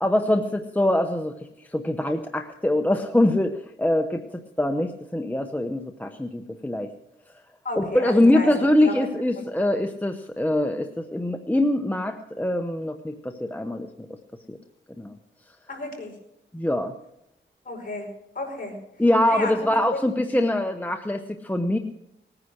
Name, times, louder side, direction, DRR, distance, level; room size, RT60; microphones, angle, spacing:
voice 1, 0.0-6.9 7.8-14.1 14.5-14.6 15.0-15.2 16.5-16.9 19.0-21.8, left 1 dB, 10° left, 5 dB, 0.8 m, -23 dB
voice 2, 7.6-9.0 15.7-16.1 17.7-18.1 18.4-18.8 19.3-19.7, left 1 dB, 40° left, 1 dB, 5.1 m, -32 dB
19.5 x 9.8 x 6.4 m, 0.83 s
wide cardioid pair, 100°, 21 cm